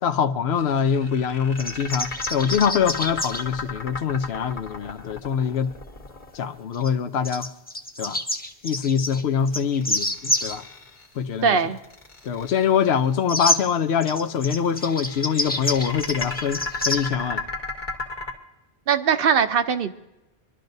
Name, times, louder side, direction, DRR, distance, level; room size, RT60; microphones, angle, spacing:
voice 1, 0.0-5.7 6.3-7.5 8.0-8.2 8.6-10.6 11.2-11.6 12.2-17.4, left 7 dB, 75° left, 0.9 m, -24 dB
sound 1, 0.6-6.8 9.6-11.2 11.7-13.1 14.3-18.3, left 3 dB, 50° left, 1.4 m, -35 dB
sound 2, 1.6-3.4 6.7-6.9 7.2-10.6 13.3-13.6 14.0-17.1, left 1 dB, 10° left, 0.5 m, -27 dB
voice 2, 11.4-11.8 18.9-19.9, right 6 dB, 65° right, 0.8 m, -20 dB
25.0 x 12.0 x 2.7 m
omnidirectional pair, 1.1 m